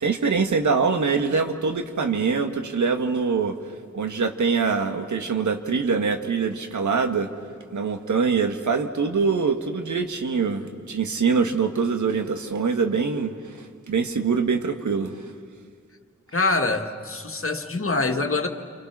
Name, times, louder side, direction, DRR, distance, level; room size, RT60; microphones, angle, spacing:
voice 1, 0.0-3.6 3.9-7.3 7.7-13.3 13.9-15.1, right 5 dB, 80° right, 6 dB, 1.7 m, -24 dB
voice 2, 16.3-18.5, left 3 dB, 50° left, 5 dB, 2.1 m, -24 dB
30.0 x 24.0 x 6.1 m, 2.1 s
cardioid pair, 45°, 29 cm